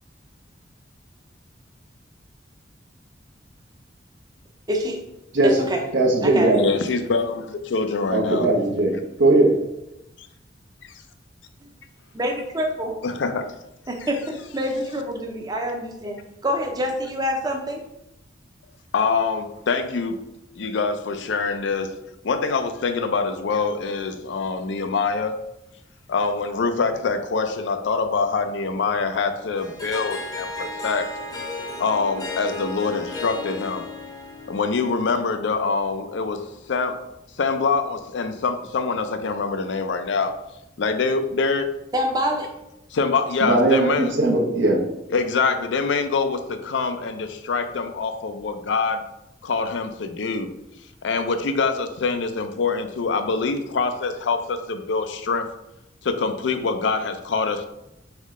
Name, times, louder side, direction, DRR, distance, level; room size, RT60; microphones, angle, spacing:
voice 1, 4.7-5.0 5.4-5.8 6.2-6.6 12.1-12.9 13.9-16.2 16.4-17.8 41.9-42.6, equal, 20° right, 2 dB, 0.6 m, -26 dB
voice 2, 5.9-6.6 8.1-8.9 9.2-9.5 43.4-44.8, right 2 dB, 85° right, 0 dB, 0.9 m, -19 dB
voice 3, 6.6-8.5 10.2-10.3 10.8-10.9 13.0-13.3 18.9-20.2 20.6-22.0 22.2-25.4 26.1-31.1 31.8-33.8 34.5-37.0 37.4-40.3 40.8-41.7 42.9-44.1 45.1-49.0 49.4-50.5 51.0-55.5 56.0-57.7, left 4 dB, 75° left, 8 dB, 0.4 m, -24 dB
Harp, 29.6-35.3, left 2 dB, 20° left, 0.7 m, -34 dB
3.5 x 3.2 x 3.6 m, 0.86 s
head